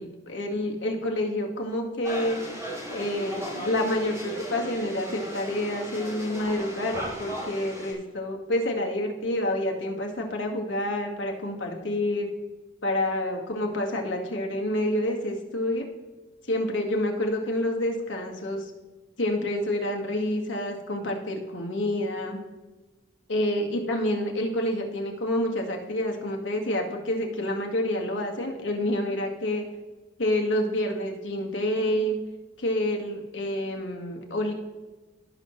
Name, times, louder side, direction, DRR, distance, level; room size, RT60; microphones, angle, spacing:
voice 1, 0.0-2.4 2.9-12.3 12.8-15.8 16.4-18.7 19.2-22.4 23.3-29.6 30.2-32.2 32.6-34.5, left 1 dB, 80° left, 1 dB, 1.8 m, -28 dB
sound 1, 2.0-7.9, right 1 dB, 15° right, 3.2 m, -36 dB
17.0 x 6.2 x 3.2 m, 1.2 s
head